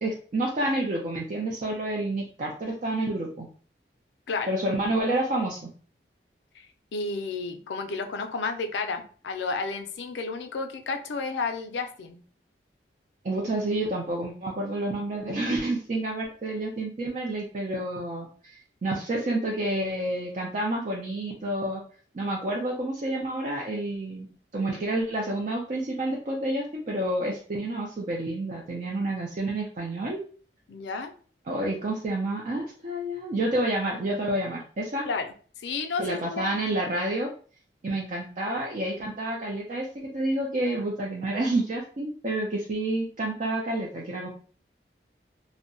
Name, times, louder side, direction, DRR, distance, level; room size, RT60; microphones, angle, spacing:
voice 1, 0.0-3.5 4.5-5.7 13.2-21.8 22.1-24.3 24.5-30.2 31.5-35.1 36.0-37.3 37.8-39.9 40.1-44.3, right 1 dB, 40° right, -1 dB, 0.4 m, -29 dB
voice 2, 6.9-12.2 30.7-31.1 35.1-35.3 35.6-36.5, left 4 dB, 80° left, 7 dB, 0.4 m, -31 dB
2.6 x 2.1 x 2.5 m, 0.42 s
head